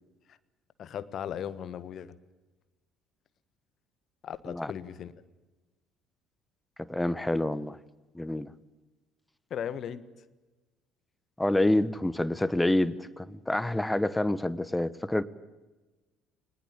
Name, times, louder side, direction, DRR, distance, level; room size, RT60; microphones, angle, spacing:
voice 1, 0.8-2.1 4.2-5.1 9.5-10.0, left 9 dB, 45° left, 1.4 m, -37 dB
voice 2, 6.9-7.8 8.1-8.5 11.4-15.2, left 1 dB, 10° left, 1.1 m, -27 dB
22.0 x 20.0 x 8.6 m
figure-of-eight pair, 55°, 0 cm